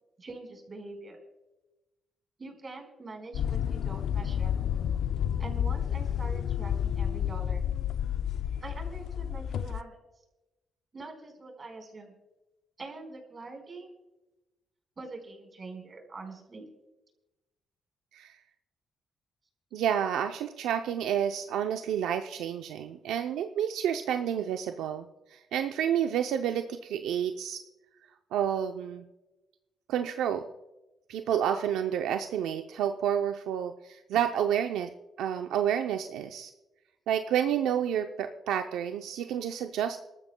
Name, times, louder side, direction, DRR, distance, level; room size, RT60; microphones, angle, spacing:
voice 1, 0.2-1.2 2.4-4.5 5.4-7.6 8.6-10.0 10.9-12.1 12.8-13.9 15.0-16.7, right 3 dB, 40° right, 3 dB, 4.5 m, -44 dB
sound 1, 3.3-9.8, left 9 dB, 75° left, 0.4 m, -30 dB
voice 2, 19.7-25.1 25.3-27.6 28.3-29.0 29.9-30.4 31.1-34.9 35.2-36.5 37.1-40.0, right 9 dB, 90° right, 6 dB, 0.5 m, -29 dB
28.5 x 13.0 x 2.2 m, 1.0 s
cardioid pair, 75°, 0 cm